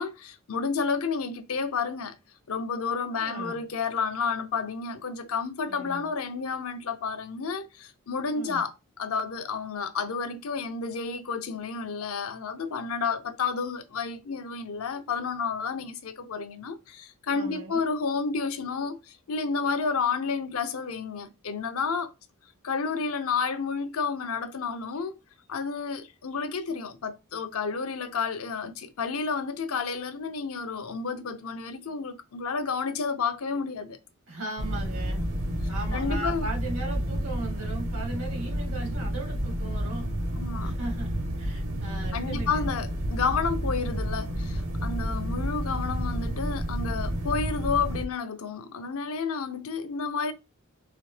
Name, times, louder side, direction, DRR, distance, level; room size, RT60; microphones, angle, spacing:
voice 1, 0.0-2.1 2.5-22.1 22.6-25.1 25.5-34.0 35.9-36.5 40.4-40.7 42.1-50.3, left 5 dB, 70° left, 0.6 m, -31 dB
voice 2, 3.1-3.7 5.7-6.1 8.3-8.7 17.3-17.8 34.3-35.2 35.7-40.1 40.6-42.7, right 2 dB, 85° right, 2.2 m, -38 dB
sound 1, 34.6-48.1, equal, 70° right, 0.9 m, -30 dB
4.0 x 2.8 x 3.2 m
head